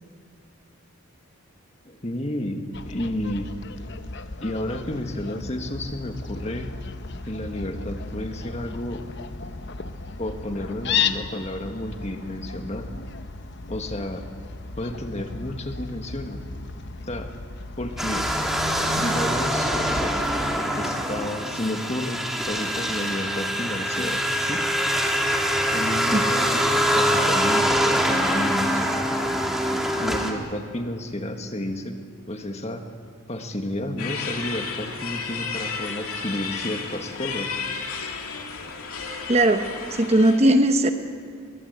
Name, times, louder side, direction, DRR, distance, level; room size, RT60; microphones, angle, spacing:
voice 1, 1.9-3.5 4.4-6.7 7.2-9.0 10.2-12.9 13.7-14.2 14.7-16.4 17.1-17.3 17.8-18.3 18.8-19.7 20.7-24.6 25.7-26.6 26.9-28.9 30.0-32.0 32.3-32.9 33.3-37.6, left 1 dB, 30° left, 5 dB, 1.7 m, -31 dB
Fowl, 2.7-20.6, left 5 dB, 55° left, 0.9 m, -34 dB
sound 1, 18.0-30.3, equal, ahead, 1.9 m, -24 dB
sound 2, 34.0-40.4, left 5 dB, 85° left, 2.7 m, -33 dB
voice 2, 39.3-39.6 39.9-40.9, right 1 dB, 30° right, 7 dB, 0.9 m, -18 dB
22.0 x 20.5 x 8.1 m, 2.2 s
head